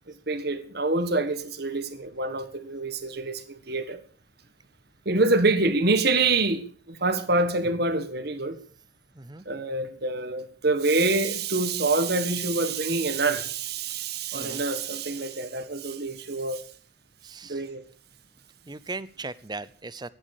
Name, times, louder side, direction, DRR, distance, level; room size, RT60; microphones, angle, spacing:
voice 1, 0.3-4.0 5.0-8.6 9.4-16.6 17.5-17.8, right 3 dB, 50° right, 1.6 m, -26 dB
voice 2, 9.2-9.5 14.3-14.6 17.2-17.6 18.7-20.1, right 3 dB, 20° right, 0.7 m, -38 dB
15.5 x 10.5 x 6.6 m
head